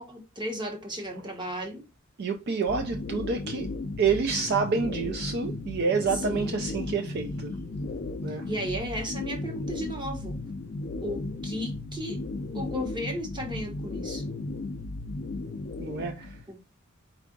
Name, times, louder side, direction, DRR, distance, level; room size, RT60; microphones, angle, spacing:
voice 1, 0.0-1.8 6.1-7.8 8.3-10.4 11.0-12.2 12.5-14.2 16.5-16.6, equal, 25° right, 1.0 m, -35 dB
voice 2, 2.2-3.7 4.0-7.5 8.2-8.5 15.8-16.4, right 5 dB, 50° right, 0.4 m, -28 dB
sound 1, 2.7-16.4, left 2 dB, 45° left, 0.4 m, -35 dB
4.5 x 2.4 x 3.8 m
head